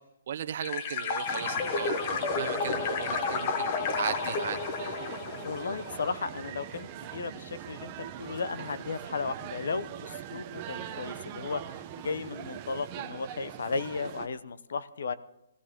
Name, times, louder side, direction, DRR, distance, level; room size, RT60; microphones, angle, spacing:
voice 1, 0.3-2.0 2.3-4.6, right 9 dB, 45° right, 9 dB, 1.0 m, -36 dB
sound 1, 0.6-6.3, left 5 dB, 30° left, 1.1 m, -31 dB
sound 2, 1.3-14.3, right 11 dB, 25° right, 0.8 m, -42 dB
voice 2, 5.4-15.1, left 4 dB, 70° left, 14 dB, 0.9 m, -35 dB
21.0 x 15.5 x 3.7 m, 0.82 s
hypercardioid pair, 165°, 0 cm